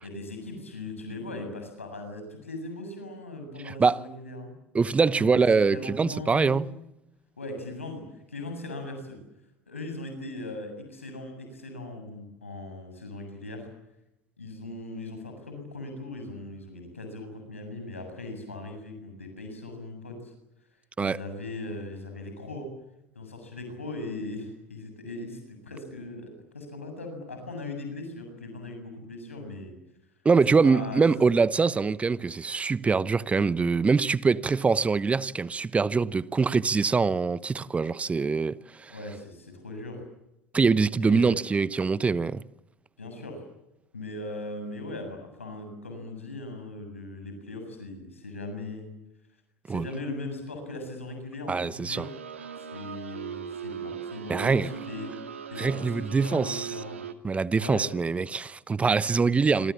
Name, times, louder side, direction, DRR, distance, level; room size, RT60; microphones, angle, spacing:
voice 1, 0.0-4.5 5.2-5.4 5.7-6.7 7.4-8.0 8.3-9.2 9.7-13.7 14.4-20.3 21.0-22.7 23.2-29.7 30.6-31.0 38.9-40.0 41.0-41.4 43.0-43.4 43.9-48.9 49.7-52.1 52.6-55.1 55.5-57.0 57.6-57.9, left 2 dB, 80° left, 7.6 m, -39 dB
voice 2, 3.7-4.0 4.7-6.7 21.0-21.2 30.2-38.9 40.5-42.4 49.7-49.9 51.5-52.1 54.3-54.7 55.6-56.7 57.2-59.7, right 4 dB, 20° right, 1.0 m, -24 dB
sound 1, 51.9-57.1, right 8 dB, 75° right, 2.3 m, -39 dB
27.0 x 27.0 x 7.4 m
figure-of-eight pair, 70°, 7 cm